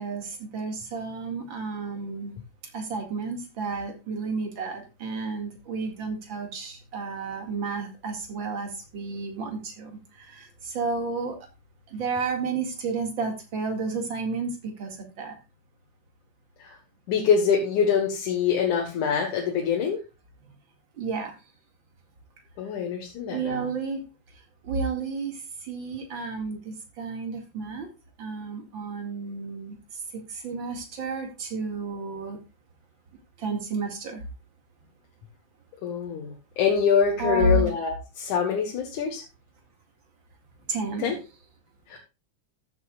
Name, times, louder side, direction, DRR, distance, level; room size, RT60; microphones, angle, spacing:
voice 1, 0.0-2.3 2.7-8.7 8.9-9.9 10.3-10.5 10.7-11.4 11.9-14.5 14.8-15.3 21.0-21.3 23.3-24.0 24.7-25.3 25.6-27.9 28.2-29.8 30.3-32.4 33.4-34.2 37.2-37.7 40.7-41.1, right 3 dB, 40° right, 4 dB, 2.7 m, -31 dB
voice 2, 17.1-20.0 22.6-23.7 35.8-39.2 41.0-41.2 41.9-42.0, left 7 dB, 75° left, 1 dB, 2.9 m, -25 dB
14.0 x 8.3 x 2.4 m, 0.28 s
omnidirectional pair, 3.6 m